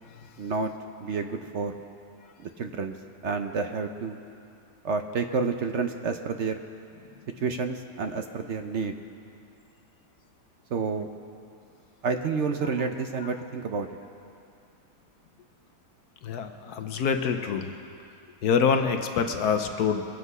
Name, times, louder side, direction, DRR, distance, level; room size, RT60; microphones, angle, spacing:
voice 1, 0.4-0.7 1.0-1.8 2.4-2.9 3.2-4.2 4.8-6.6 7.4-8.9 10.7-11.1 12.0-13.9, right 4 dB, 60° right, 6 dB, 0.8 m, -29 dB
voice 2, 16.2-17.7 18.4-20.1, left 6 dB, 70° left, 7 dB, 1.2 m, -26 dB
22.5 x 8.1 x 5.4 m, 2.5 s
omnidirectional pair, 1.8 m